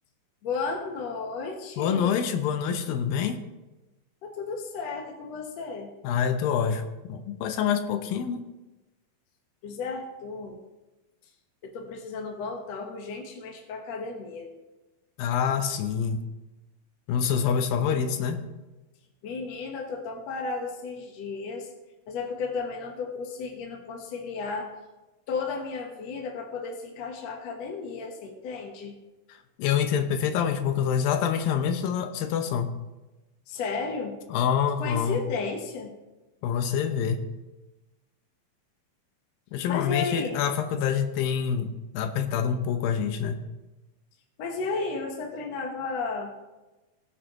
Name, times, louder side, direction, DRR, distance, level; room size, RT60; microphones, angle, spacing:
voice 1, 0.4-2.3 4.2-5.9 9.6-10.6 11.6-14.5 17.8-18.3 19.2-21.7 22.1-24.7 25.3-28.9 33.5-34.2 34.8-35.9 39.7-40.4 44.4-46.5, left 4 dB, 60° left, 2 dB, 1.9 m, -34 dB
voice 2, 1.8-3.4 6.0-8.4 15.2-16.3 17.1-18.4 29.6-32.7 34.3-35.2 36.4-37.2 39.5-43.4, left 7 dB, 80° left, 6 dB, 2.7 m, -26 dB
20.0 x 7.4 x 3.0 m, 1.1 s
omnidirectional pair, 4.1 m